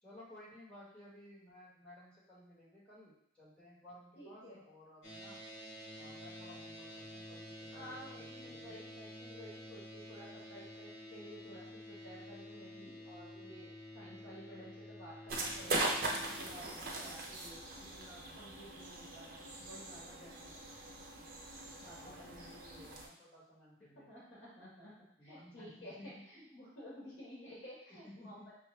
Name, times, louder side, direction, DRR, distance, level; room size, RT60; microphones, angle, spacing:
voice 1, 0.0-5.4 6.0-8.7 22.0-24.1 25.2-26.5 27.9-28.5, left 1 dB, 5° left, -10 dB, 1.5 m, -57 dB
voice 2, 4.1-4.6 7.7-20.7 21.8-22.5 24.1-24.9 25.2-28.4, equal, 60° left, -6 dB, 1.4 m, -53 dB
sound 1, 5.0-16.6, left 1 dB, 85° left, 1.0 m, -50 dB
sound 2, 15.3-23.1, right 2 dB, 50° right, 0.6 m, -40 dB
5.4 x 2.3 x 3.2 m, 0.72 s
head